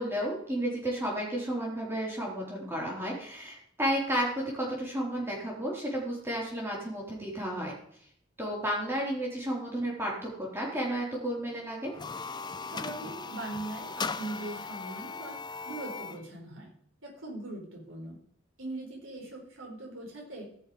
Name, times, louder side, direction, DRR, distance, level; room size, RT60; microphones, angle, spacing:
voice 1, 0.0-7.7 8.4-11.9, equal, 10° right, -4 dB, 3.9 m, -32 dB
sound 1, 11.8-16.2, left 4 dB, 20° left, 0.5 m, -38 dB
voice 2, 12.7-15.4 15.6-16.7 17.0-18.2 18.6-20.5, right 2 dB, 85° right, -1 dB, 4.7 m, -40 dB
15.5 x 6.4 x 5.1 m, 0.64 s
head